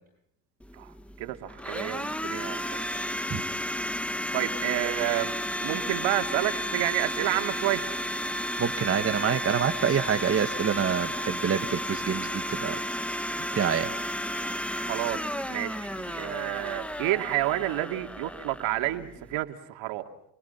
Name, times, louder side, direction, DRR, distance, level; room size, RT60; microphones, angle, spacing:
Domestic sounds home sounds, 0.6-19.4, equal, 5° left, 1.5 m, -33 dB
voice 1, 0.7-2.9 4.3-5.3 5.6-7.9 14.8-15.2 15.5-20.1, right 16 dB, 70° right, 6 dB, 3.0 m, -30 dB
voice 2, 8.6-12.8 13.5-13.9, right 7 dB, 30° right, 8 dB, 1.6 m, -27 dB
29.5 x 25.0 x 5.9 m, 0.76 s
supercardioid pair, 95°, 48 cm